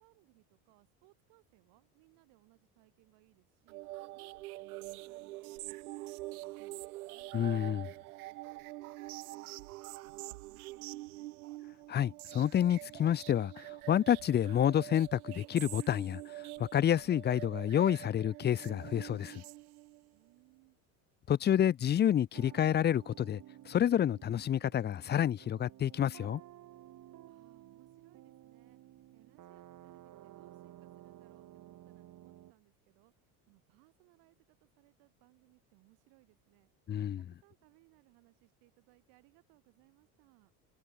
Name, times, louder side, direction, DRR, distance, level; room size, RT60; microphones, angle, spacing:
voice 1, 0.0-7.3 8.2-11.4 20.1-20.8 27.3-28.8 29.1-33.1 33.5-36.7 37.2-40.5, right 30 dB, 70° right, 7.3 m, -67 dB
sound 1, 3.7-20.1, right 19 dB, 90° right, 1.4 m, -46 dB
voice 2, 7.3-7.9 11.9-19.4 21.3-23.4 23.7-26.4 36.9-37.2, left 10 dB, 25° left, 0.5 m, -29 dB
sound 2, 22.3-32.5, right 14 dB, 45° right, 1.6 m, -54 dB
supercardioid pair, 90°, 42 cm